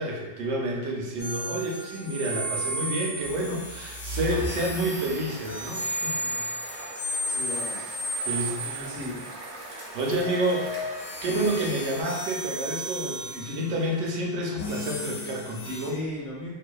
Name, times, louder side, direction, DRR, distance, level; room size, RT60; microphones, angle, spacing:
voice 1, 0.0-6.4 8.3-8.9 9.7-10.7 11.2-16.0, right 1 dB, 85° right, -2 dB, 0.9 m, -29 dB
sound 1, 1.2-9.5 10.2-15.9, equal, 80° left, 0.9 m, -34 dB
sound 2, 4.2-12.0, right 1 dB, 50° right, 0.6 m, -41 dB
voice 2, 7.3-7.8 8.6-9.3 15.8-16.5, left 1 dB, 50° left, -7 dB, 0.8 m, -36 dB
2.5 x 2.1 x 2.2 m, 1.1 s
omnidirectional pair, 1.2 m